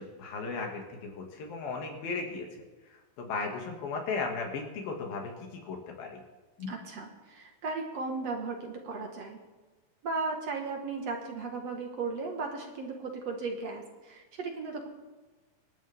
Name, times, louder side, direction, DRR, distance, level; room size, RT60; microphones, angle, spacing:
voice 1, 0.0-6.2 6.6-6.7, left 4 dB, 80° left, 2 dB, 4.1 m, -36 dB
voice 2, 6.7-9.4 10.0-14.9, right 3 dB, 55° right, 2 dB, 2.5 m, -36 dB
27.5 x 11.5 x 3.6 m, 1.3 s
omnidirectional pair, 4.1 m